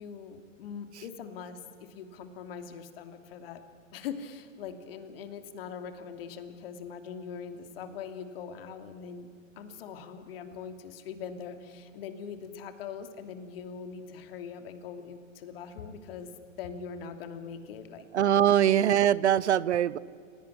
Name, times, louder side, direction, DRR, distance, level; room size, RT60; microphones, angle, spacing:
voice 1, 0.0-3.6 3.9-9.3 9.6-16.3 16.6-18.1 18.4-18.9, left 6 dB, 45° left, 8 dB, 2.8 m, -42 dB
voice 2, 18.1-20.0, right 10 dB, 60° right, 20 dB, 0.8 m, -22 dB
30.0 x 18.0 x 10.0 m, 2.2 s
figure-of-eight pair, 115°, 40 cm